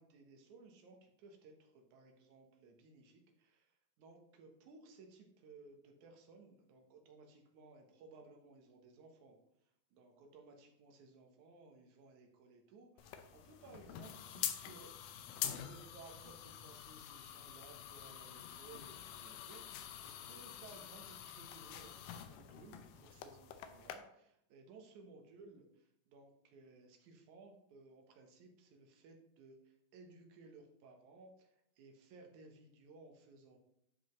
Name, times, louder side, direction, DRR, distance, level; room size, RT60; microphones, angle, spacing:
voice 1, 0.0-9.4 9.9-14.9 15.5-33.6, right 3 dB, 70° right, 3 dB, 2.4 m, -59 dB
sound 1, 13.0-24.0, left 10 dB, 85° left, 2.3 m, -46 dB
11.5 x 5.0 x 3.1 m, 0.76 s
omnidirectional pair, 3.8 m